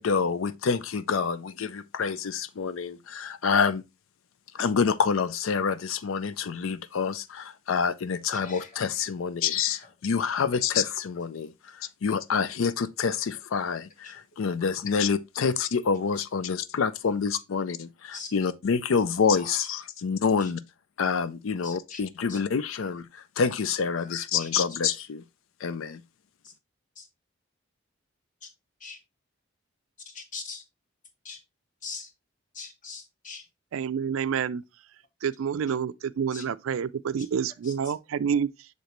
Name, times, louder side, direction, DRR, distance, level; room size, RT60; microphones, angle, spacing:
voice 1, 0.0-3.8 4.5-20.6 21.0-25.2 25.6-26.0, left 6 dB, 80° left, 0.5 m, -27 dB
voice 2, 21.6-22.0 22.3-22.4 24.1-24.2 27.0-27.1 28.8-29.0 30.1-30.6 31.2-31.4 31.8-32.1 32.6-33.4 36.3-36.4, left 4 dB, 40° left, 1.2 m, -40 dB
voice 3, 33.7-34.6 35.2-38.7, right 7 dB, 85° right, 0.4 m, -28 dB
6.6 x 5.0 x 3.0 m
head